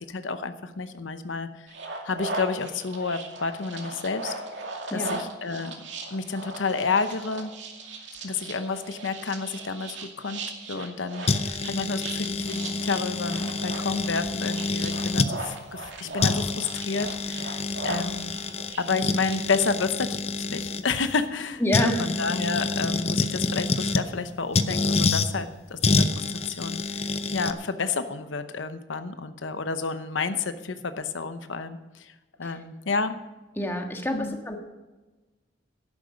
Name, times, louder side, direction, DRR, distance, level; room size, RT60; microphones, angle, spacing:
voice 1, 0.0-1.7 2.0-4.3 4.9-5.7 6.1-7.5 8.2-10.4 10.7-18.3 18.8-20.2 20.5-26.8 27.3-32.1 32.4-33.2 34.1-34.4, left 4 dB, 85° left, 10 dB, 0.9 m, -30 dB
sound 1, 1.7-19.4, right 3 dB, 75° right, 2.4 m, -38 dB
sound 2, 11.3-15.3 15.9-16.0 16.2-20.8 21.7-24.1 24.5-25.3 25.8-27.5, left 3 dB, 35° left, 0.7 m, -27 dB
voice 2, 21.6-22.0 32.4-32.5 33.6-34.6, equal, 10° left, 3 dB, 1.6 m, -27 dB
13.0 x 11.0 x 5.2 m, 1.1 s
head